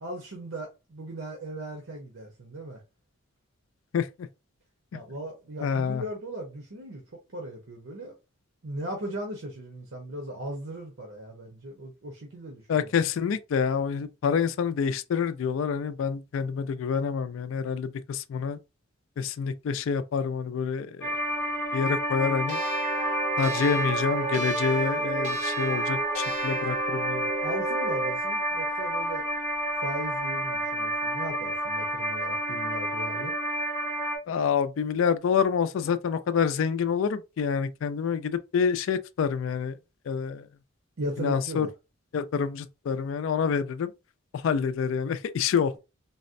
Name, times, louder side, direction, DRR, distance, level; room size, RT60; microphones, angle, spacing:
voice 1, 0.0-2.8 4.9-7.0 7.3-8.1 8.6-12.9 27.4-29.3 29.8-33.3 41.0-41.7, right 1 dB, 80° right, 0.8 m, -37 dB
voice 2, 5.6-6.0 12.7-18.6 19.2-21.2 21.7-22.6 23.4-27.3 34.3-39.8 40.1-40.5 41.2-41.7 42.1-43.9 44.4-45.7, left 6 dB, 80° left, 0.3 m, -27 dB
sound 1, 21.0-34.2, right 1 dB, 15° left, 0.6 m, -30 dB
sound 2, 22.5-28.2, right 4 dB, 35° right, 0.5 m, -33 dB
4.0 x 2.1 x 2.5 m
head